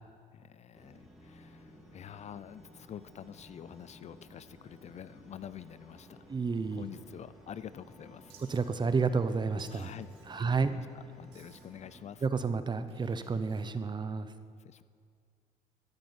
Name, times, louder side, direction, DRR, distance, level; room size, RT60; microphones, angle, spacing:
voice 1, 0.3-6.2 6.7-8.4 9.7-10.1 10.3-12.2 14.6-14.8, left 9 dB, 40° left, 16 dB, 0.4 m, -47 dB
sound 1, 0.7-12.0, equal, ahead, 2.8 m, -55 dB
voice 2, 6.3-6.8 8.5-9.9 10.3-10.7 12.2-14.3, right 4 dB, 25° right, 12 dB, 0.8 m, -30 dB
Wild animals, 8.3-8.6 9.6-10.5 11.3-11.8 12.9-13.7, right 7 dB, 90° right, 2.2 m, -61 dB
12.5 x 10.5 x 8.6 m, 2.2 s
cardioid pair, 110°, 17 cm